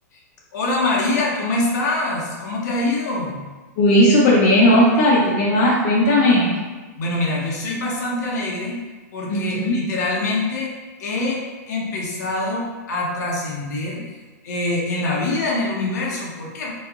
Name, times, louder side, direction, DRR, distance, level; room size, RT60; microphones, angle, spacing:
voice 1, 0.5-3.4 7.0-8.8 9.1-10.7 11.0-11.4 11.7-14.2 14.4-16.7, left 2 dB, 75° left, -3 dB, 0.9 m, -24 dB
voice 2, 3.8-6.6 9.3-9.8, left 1 dB, 50° left, -4 dB, 0.7 m, -16 dB
3.0 x 2.4 x 3.6 m, 1.3 s
supercardioid pair, 150°, 9 cm